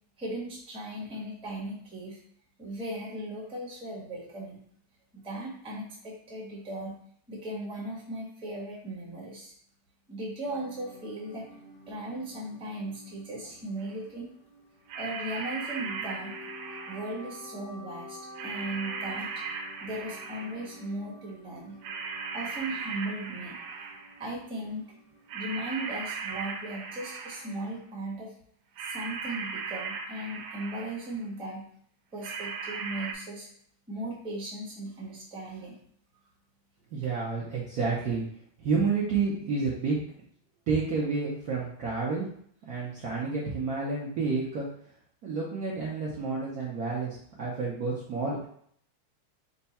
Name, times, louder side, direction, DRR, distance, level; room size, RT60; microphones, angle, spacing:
voice 1, 0.2-2.2 2.6-4.6 5.1-6.9 7.3-9.5 10.1-11.4 11.9-14.3 14.9-16.3 16.9-19.3 19.8-21.8 22.3-23.6 24.2-24.8 25.3-28.3 28.8-31.6 32.1-33.5 33.9-35.7, right 1 dB, 5° right, -5 dB, 0.6 m, -37 dB
sound 1, 10.5-27.7, left 2 dB, 50° left, 0.8 m, -50 dB
sound 2, 13.8-13.9 14.9-17.3 18.3-20.8 21.8-24.2 25.3-27.7 28.8-31.2 32.2-33.1, right 5 dB, 80° right, 1.6 m, -38 dB
voice 2, 36.9-38.2 38.6-40.0 40.7-42.3 42.7-44.7 45.2-48.5, right 4 dB, 65° right, -5 dB, 1.0 m, -30 dB
4.5 x 2.3 x 4.1 m, 0.63 s
omnidirectional pair, 2.4 m